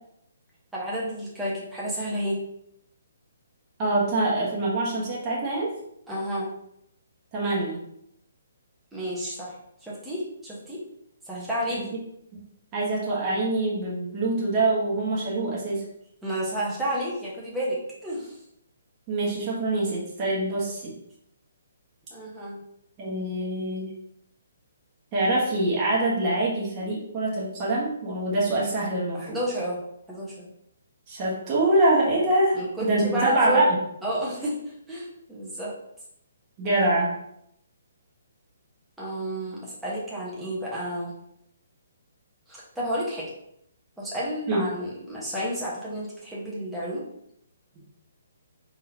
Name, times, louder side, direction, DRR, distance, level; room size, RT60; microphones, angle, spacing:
voice 1, 0.7-2.4 6.1-6.5 8.9-9.5 9.8-10.8 11.2-11.8 16.2-18.4 22.1-22.6 29.1-29.8 30.1-30.5 32.5-33.6 34.0-34.5 34.9-35.7 39.0-41.1 42.5-43.2 44.0-47.0, right 1 dB, 5° right, -7 dB, 1.3 m, -31 dB
voice 2, 3.8-5.7 7.3-7.8 11.7-11.8 12.7-15.8 19.1-20.9 23.0-23.9 25.1-29.4 31.1-33.6 36.6-37.1 44.5-44.6, right 2 dB, 30° right, -6 dB, 1.4 m, -25 dB
3.9 x 3.7 x 2.8 m, 0.75 s
figure-of-eight pair, 135°, 0 cm